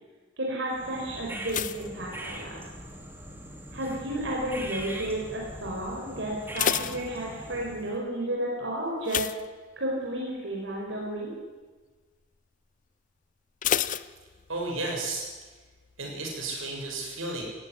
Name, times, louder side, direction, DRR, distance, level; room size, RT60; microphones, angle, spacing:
voice 1, 0.4-2.6 3.7-9.2 9.8-11.3, right 1 dB, 65° right, -3 dB, 5.1 m, -32 dB
sound 1, 0.7-8.0, right 1 dB, 10° right, 2.9 m, -41 dB
sound 2, 1.4-2.9 3.2-3.7 4.3-4.7 5.0-5.1 5.5-5.6 6.2-7.7 9.0-10.2 10.5-10.8 11.2-11.3 13.6-14.8 15.1-15.2, left 9 dB, 40° left, 0.6 m, -31 dB
voice 2, 14.5-15.3 16.0-17.4, right 2 dB, 90° right, 0 dB, 7.0 m, -33 dB
18.0 x 16.0 x 10.0 m, 1.3 s
head